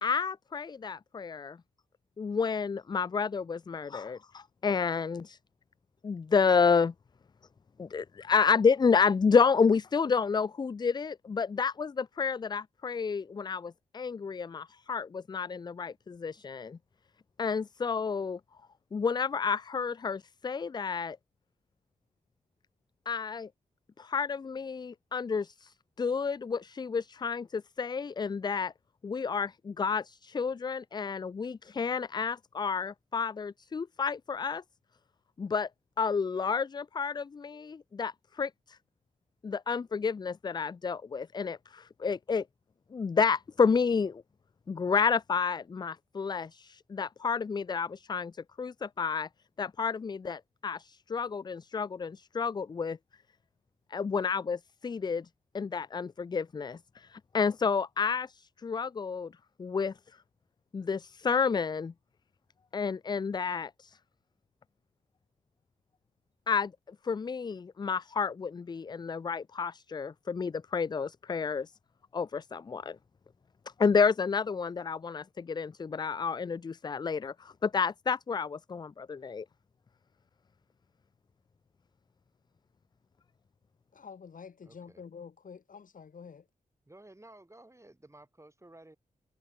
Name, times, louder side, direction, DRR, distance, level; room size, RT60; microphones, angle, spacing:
voice 1, 0.0-1.6 2.2-5.4 6.0-6.9 7.8-16.8 17.4-18.4 18.9-21.2 23.1-23.5 24.0-28.7 29.0-34.6 35.4-35.7 36.0-38.8 39.4-42.4 42.9-44.2 44.7-49.3 49.6-53.0 53.9-55.3 55.5-59.3 59.6-59.9 60.7-61.9 62.7-64.0 66.5-71.7 72.1-73.0 73.8-79.5, left 5 dB, 30° left, 0.4 m, -30 dB
voice 2, 83.9-86.5, left 6 dB, 65° left, 4.0 m, -48 dB
voice 3, 84.7-85.0 86.9-89.0, right 1 dB, 20° right, 5.4 m, -54 dB
supercardioid pair, 45°, 15 cm